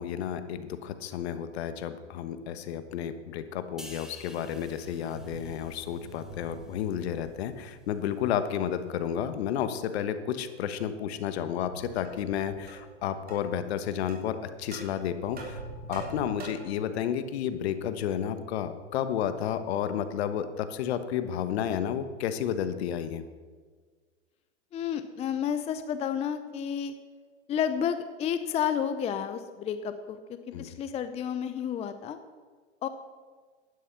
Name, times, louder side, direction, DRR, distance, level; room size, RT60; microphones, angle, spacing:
voice 1, 0.0-15.6 15.9-23.2 30.5-30.7, left 9 dB, 60° left, 11 dB, 1.3 m, -31 dB
sound 1, 3.8-7.3 7.7-7.9, equal, ahead, 1.2 m, -51 dB
sound 2, 4.4-8.0 9.0-9.3 10.6-13.2 14.6-16.4, right 2 dB, 90° right, 3.0 m, -46 dB
sound 3, 12.0-12.1 12.7-12.9 13.3-13.4 14.1-14.2 14.7-14.9 15.4-16.8, right 3 dB, 25° right, 3.7 m, -43 dB
voice 2, 24.7-26.9 27.5-32.2 32.8-32.9, left 8 dB, 20° left, 10 dB, 0.6 m, -31 dB
11.5 x 9.9 x 6.0 m, 1.5 s
hypercardioid pair, 115°, 36 cm